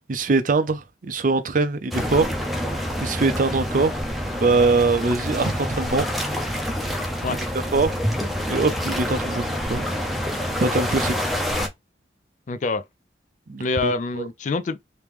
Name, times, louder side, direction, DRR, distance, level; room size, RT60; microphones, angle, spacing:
voice 1, 0.1-4.0 4.4-6.1 7.3-7.4 7.7-7.9 8.5-9.9 10.6-11.2 13.5-14.3, right 3 dB, 45° right, 0.5 m, -23 dB
sound 1, 1.9-11.7, equal, ahead, 0.6 m, -27 dB
voice 2, 12.5-12.8 13.6-14.8, left 3 dB, 40° left, 0.3 m, -26 dB
3.1 x 3.0 x 3.4 m
head